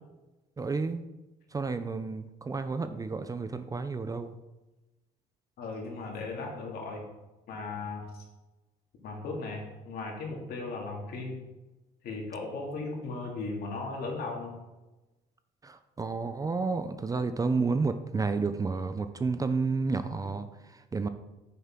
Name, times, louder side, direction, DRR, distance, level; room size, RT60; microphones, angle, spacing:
voice 1, 0.6-1.1 1.5-4.3 15.6-20.5 20.9-21.1, right 4 dB, 20° right, 10 dB, 0.4 m, -31 dB
voice 2, 5.6-7.0 7.5-8.1 9.0-11.4 12.0-14.6, left 3 dB, 65° left, 0 dB, 2.4 m, -37 dB
8.6 x 6.9 x 3.8 m, 1.1 s
cardioid pair, 110°, 17 cm